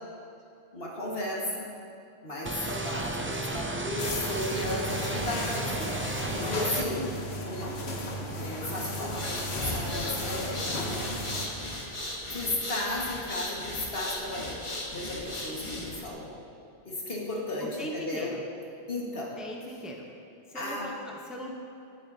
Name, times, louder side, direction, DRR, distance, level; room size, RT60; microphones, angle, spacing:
voice 1, 0.7-1.7 2.2-11.3 12.3-14.6 14.9-16.3 16.9-18.4 18.9-19.4 20.5-20.9, left 1 dB, 70° left, -4 dB, 1.9 m, -35 dB
sound 1, 2.5-6.9, right 2 dB, 20° right, 0.3 m, -33 dB
sound 2, 4.0-11.5, left 1 dB, 85° left, 1.3 m, -35 dB
sound 3, 9.0-16.1, left 1 dB, 30° left, 1.3 m, -37 dB
voice 2, 17.8-18.4 19.4-20.0 20.5-21.5, left 1 dB, ahead, -1 dB, 0.9 m, -39 dB
17.5 x 7.1 x 2.8 m, 2.8 s
omnidirectional pair, 1.1 m